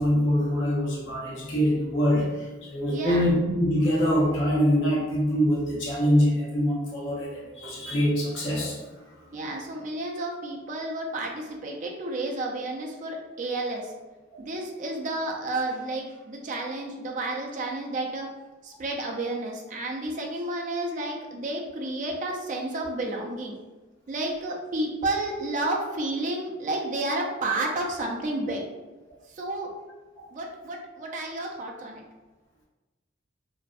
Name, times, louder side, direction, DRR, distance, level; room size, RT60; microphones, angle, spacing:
voice 1, 0.0-8.8 14.3-14.4 30.2-30.3, equal, 65° left, -5 dB, 0.7 m, -24 dB
voice 2, 2.9-3.4 9.3-13.9 14.4-18.3 18.6-23.6 24.1-28.6 29.3-29.7 30.3-32.0, right 2 dB, 40° right, 0 dB, 0.4 m, -31 dB
2.5 x 2.1 x 2.3 m, 1.2 s
head